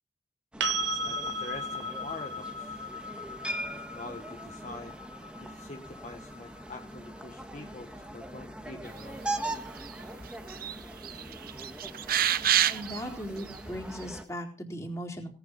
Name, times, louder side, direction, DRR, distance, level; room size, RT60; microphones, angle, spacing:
sound 1, 0.5-14.2, right 1 dB, 5° right, 1.5 m, -41 dB
sound 2, 0.6-8.4 11.2-11.3, right 1 dB, 75° right, 1.2 m, -37 dB
voice 1, 0.8-2.8 3.7-5.0 5.4-9.2, left 2 dB, 40° left, 4 dB, 1.2 m, -45 dB
sound 3, 9.4-10.0 10.3-10.8 11.0-13.0 13.5-13.6, right 10 dB, 55° right, 0.7 m, -27 dB
voice 2, 12.7-15.3, equal, 15° left, 1 dB, 4.1 m, -38 dB
18.0 x 9.7 x 5.4 m, 0.39 s
head